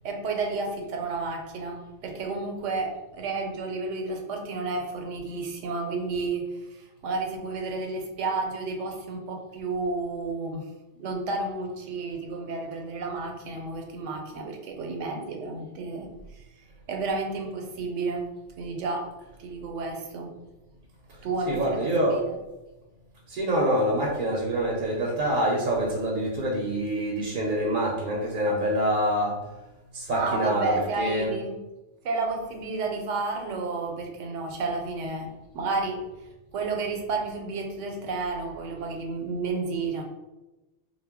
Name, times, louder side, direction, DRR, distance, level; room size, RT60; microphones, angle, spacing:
voice 1, 0.0-10.7 11.0-16.4 16.9-18.3 18.6-19.1 19.4-20.3 21.2-22.3 30.1-31.5 32.0-36.0 36.5-40.0, right 3 dB, 85° right, 2 dB, 0.9 m, -31 dB
voice 2, 21.5-22.2 23.3-29.4 29.9-31.3, right 1 dB, 55° right, -2 dB, 0.6 m, -26 dB
2.2 x 2.0 x 3.4 m, 1.0 s
omnidirectional pair, 1.2 m